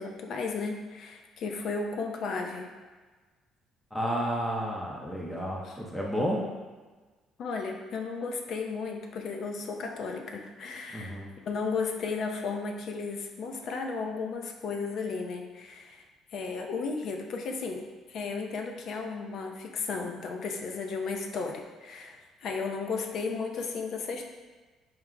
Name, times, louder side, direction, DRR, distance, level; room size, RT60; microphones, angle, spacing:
voice 1, 0.0-2.7 5.6-5.8 7.4-11.2 11.5-16.0 16.3-24.2, left 4 dB, 60° left, 3 dB, 0.4 m, -34 dB
voice 2, 3.9-6.4 10.9-11.3, equal, 5° left, -3 dB, 0.5 m, -31 dB
4.5 x 2.0 x 3.6 m, 1.3 s
cardioid pair, 115°, 0 cm